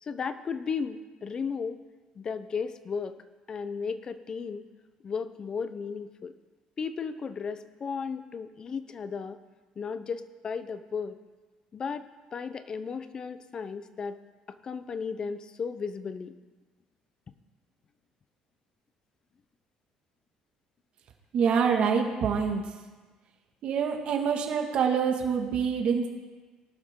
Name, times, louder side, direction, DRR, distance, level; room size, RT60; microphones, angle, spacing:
voice 1, 0.0-1.8 2.2-3.2 3.5-4.6 5.0-6.3 6.8-9.4 9.8-11.1 11.7-14.2 14.6-16.3, left 5 dB, 35° left, 12 dB, 0.7 m, -35 dB
voice 2, 21.3-22.6 23.6-26.1, right 6 dB, 55° right, 2 dB, 1.9 m, -26 dB
19.5 x 12.0 x 3.8 m, 1.3 s
cardioid pair, 135°, 2 cm